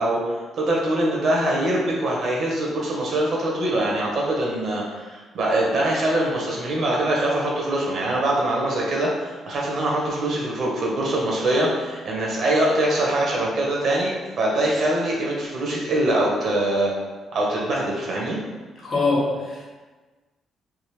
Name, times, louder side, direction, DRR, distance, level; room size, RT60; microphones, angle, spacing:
voice 1, 0.0-16.9 17.3-18.4, right 1 dB, 60° right, -3 dB, 1.0 m, -23 dB
voice 2, 18.8-19.7, left 3 dB, 50° left, -5 dB, 1.1 m, -23 dB
3.6 x 2.5 x 3.1 m, 1.3 s
cardioid pair, 90°, 0 cm